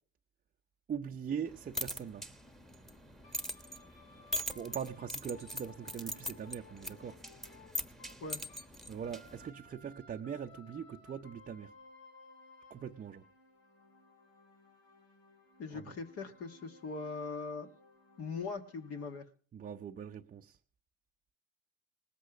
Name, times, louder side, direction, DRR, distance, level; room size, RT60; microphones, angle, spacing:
voice 1, 0.9-2.3 4.5-7.2 8.9-11.7 12.7-13.3 15.7-15.9 19.5-20.6, right 7 dB, 30° right, 0.6 m, -41 dB
sound 1, 1.5-9.5, equal, ahead, 1.3 m, -42 dB
sound 2, 3.2-8.7 9.0-19.2, left 3 dB, 90° left, 4.0 m, -59 dB
voice 2, 15.6-17.7 18.2-19.2, left 4 dB, 50° left, 1.6 m, -40 dB
19.5 x 8.1 x 5.0 m
supercardioid pair, 85°, 30 cm